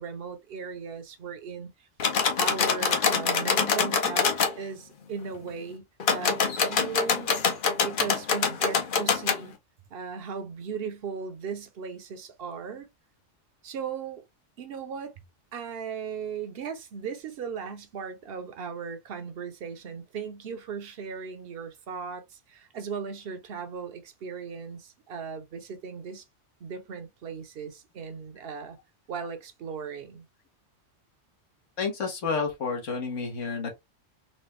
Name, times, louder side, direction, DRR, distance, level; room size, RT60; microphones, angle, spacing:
voice 1, 0.0-1.9 2.4-5.8 6.1-7.3 7.8-9.5 9.9-12.9 13.6-14.2 14.6-15.1 15.5-26.2 26.6-28.8 29.1-30.2, right 6 dB, 55° right, 0.9 m, -37 dB
door handle, 2.0-4.5 6.0-9.4, left 5 dB, 50° left, 0.8 m, -25 dB
voice 2, 31.8-33.7, left 5 dB, 80° left, 1.5 m, -30 dB
4.2 x 2.2 x 3.2 m
omnidirectional pair, 1.3 m